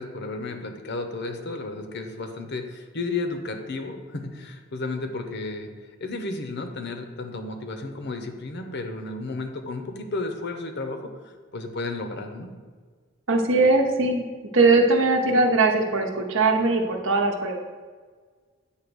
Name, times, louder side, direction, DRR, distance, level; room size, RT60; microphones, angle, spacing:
voice 1, 0.0-5.7 6.0-11.1 11.5-12.5, left 3 dB, 55° left, 6 dB, 0.8 m, -33 dB
voice 2, 13.3-14.2 14.5-17.7, right 3 dB, 70° right, 3 dB, 0.8 m, -20 dB
8.3 x 2.9 x 6.1 m, 1.5 s
head